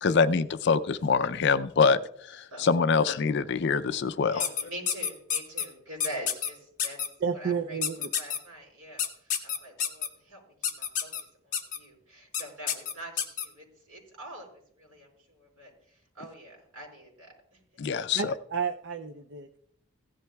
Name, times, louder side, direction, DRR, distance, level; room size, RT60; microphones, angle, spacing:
voice 1, 0.0-2.0 2.3-4.4 17.8-18.3, left 5 dB, 55° left, 13 dB, 0.4 m, -24 dB
voice 2, 4.2-7.0 7.3-11.1 11.4-14.5 14.8-17.6, right 1 dB, 85° right, -1 dB, 5.0 m, -44 dB
sound 1, 4.4-5.6 6.0-6.5 6.8-7.1 7.8-8.4 9.0-10.1 10.6-11.2 11.5-11.8 12.3-12.4 12.7-13.4, left 8 dB, 35° left, 1.0 m, -28 dB
voice 3, 7.2-8.1 18.1-19.6, right 6 dB, 55° right, 4 dB, 0.4 m, -31 dB
16.5 x 11.0 x 2.3 m, 0.70 s
head